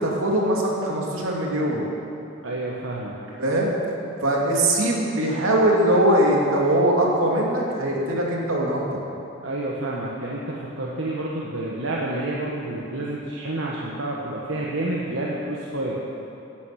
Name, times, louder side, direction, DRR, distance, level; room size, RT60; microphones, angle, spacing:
voice 1, 0.0-1.8 3.4-3.7 4.2-9.0, right 1 dB, 85° right, -2 dB, 2.6 m, -21 dB
voice 2, 2.4-3.2 9.4-16.0, right 1 dB, 70° right, -4 dB, 1.4 m, -29 dB
14.5 x 10.5 x 6.0 m, 2.8 s
head